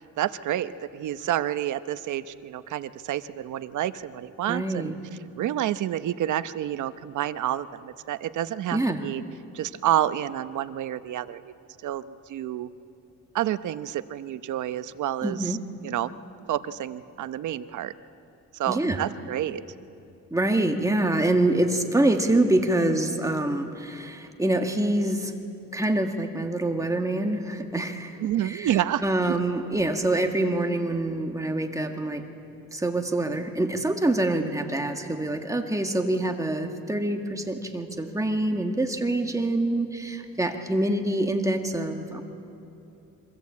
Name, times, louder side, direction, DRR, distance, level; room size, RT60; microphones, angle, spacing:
voice 1, 0.2-4.9 5.4-9.2 9.5-11.5 11.8-12.7 13.3-15.6 15.8-16.1 16.5-17.9 18.5-19.6 28.2-29.0 29.3-29.4, right 12 dB, 75° right, 13 dB, 0.9 m, -29 dB
voice 2, 4.5-4.9 8.7-9.1 15.2-15.6 18.7-19.1 20.3-25.3 25.7-28.7 29.0-32.2 32.7-42.2, right 1 dB, 10° right, 4 dB, 1.8 m, -25 dB
26.5 x 24.5 x 8.5 m, 2.7 s
cardioid pair, 135°, 30 cm